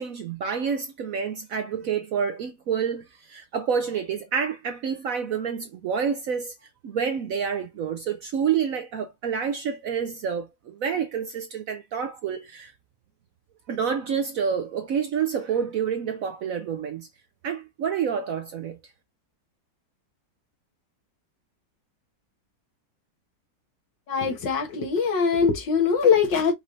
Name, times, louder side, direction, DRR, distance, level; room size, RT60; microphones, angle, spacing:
voice 1, 0.0-6.5 6.8-12.7 13.7-17.1 17.4-18.8, right 7 dB, 70° right, 0.8 m, -28 dB
voice 2, 24.1-26.5, left 6 dB, 80° left, 2.0 m, -22 dB
5.3 x 2.5 x 3.1 m
omnidirectional pair, 2.0 m